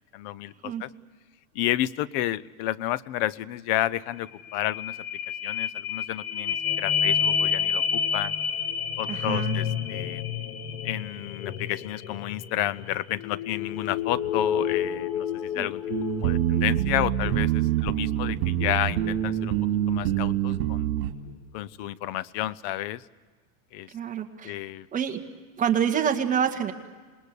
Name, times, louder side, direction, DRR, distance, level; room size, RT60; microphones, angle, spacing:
voice 1, 0.1-0.9 1.5-5.0 5.4-8.3 9.0-10.2 10.8-15.8 16.2-19.6 19.9-20.9 21.5-23.0 23.7-23.9 24.4-24.9, left 14 dB, 40° left, 23 dB, 0.7 m, -31 dB
sound 1, 4.2-20.1 20.6-20.7, left 7 dB, 80° left, 2.2 m, -30 dB
voice 2, 9.1-9.6 15.5-16.0 23.9-24.6 24.9-25.2 25.6-26.7, right 8 dB, 20° right, 4 dB, 1.7 m, -27 dB
sound 2, 15.9-21.1, right 12 dB, 60° right, 2.8 m, -25 dB
27.5 x 20.5 x 8.3 m, 1.4 s
supercardioid pair, 155°, 43 cm